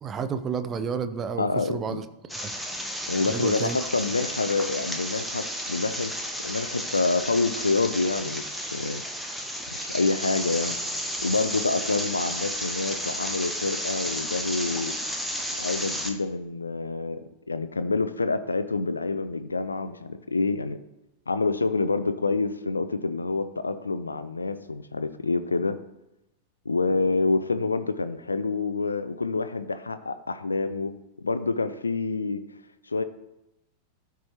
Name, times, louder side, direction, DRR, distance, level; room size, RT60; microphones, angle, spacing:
voice 1, 0.0-2.0 2.4-2.5 3.2-3.9, right 6 dB, 25° right, 10 dB, 0.6 m, -31 dB
voice 2, 1.4-2.0 3.1-6.1 6.4-9.0 9.7-10.8 11.2-14.9 15.6-17.2 17.5-20.8 21.3-25.8 26.7-30.9 31.2-32.4 32.9-33.0, left 3 dB, 80° left, 12 dB, 0.4 m, -27 dB
sound 1, 2.3-16.1, equal, ahead, 0.9 m, -32 dB
13.5 x 4.7 x 2.9 m, 0.91 s
figure-of-eight pair, 90°, 0 cm